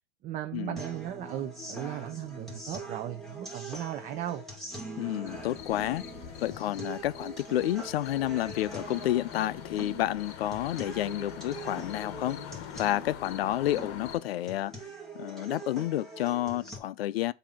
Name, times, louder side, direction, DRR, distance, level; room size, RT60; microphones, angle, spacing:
voice 1, 0.2-4.4, right 12 dB, 25° right, 0.5 m, -36 dB
sound 1, 0.8-16.8, right 2 dB, ahead, 1.9 m, -43 dB
voice 2, 5.0-6.0 6.4-12.4 12.8-17.3, left 14 dB, 70° left, 0.5 m, -30 dB
sound 2, 5.3-14.2, left 10 dB, 45° left, 1.0 m, -44 dB
7.4 x 2.7 x 5.5 m
hypercardioid pair, 120°, 31 cm